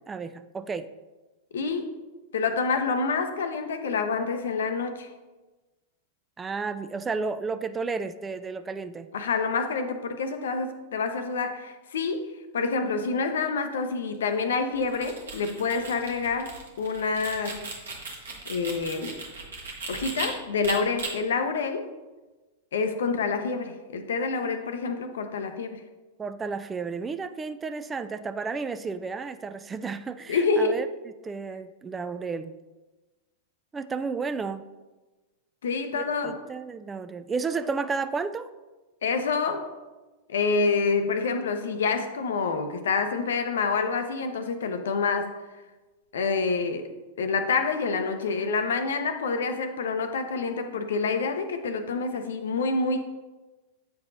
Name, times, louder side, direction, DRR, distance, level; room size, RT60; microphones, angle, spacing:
voice 1, 0.1-0.9 6.4-9.1 26.2-30.9 31.2-32.5 33.7-34.6 35.9-38.5, right 4 dB, 20° right, 11 dB, 0.3 m, -32 dB
voice 2, 1.5-2.0 2.3-5.1 9.1-17.7 18.5-19.2 19.9-21.9 22.7-25.8 30.3-30.8 35.6-36.4 39.0-39.7 40.3-45.4 46.1-46.9 47.2-53.0, left 4 dB, 75° left, 7 dB, 0.6 m, -27 dB
sound 1, 14.8-20.3 20.6-21.1, right 3 dB, 85° right, 1.3 m, -37 dB
8.3 x 4.7 x 2.6 m, 1.2 s
hypercardioid pair, 100°, 0 cm